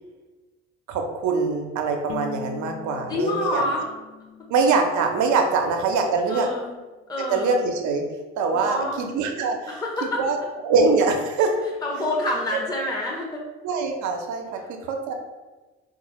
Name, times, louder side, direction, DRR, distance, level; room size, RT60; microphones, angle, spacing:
voice 1, 0.9-3.6 4.5-6.5 7.2-8.0 8.4-10.4 10.6-11.6 13.6-15.1, right 4 dB, 65° right, 4 dB, 0.7 m, -23 dB
Bowed string instrument, 2.1-5.3, left 8 dB, 55° left, 0.4 m, -40 dB
voice 2, 3.1-3.9 6.3-6.8 7.1-7.6 8.5-9.1 9.7-10.2 11.8-13.4 14.5-14.7, left 1 dB, 10° left, -2 dB, 0.8 m, -27 dB
3.8 x 2.4 x 2.9 m, 1.2 s
hypercardioid pair, 55°, 32 cm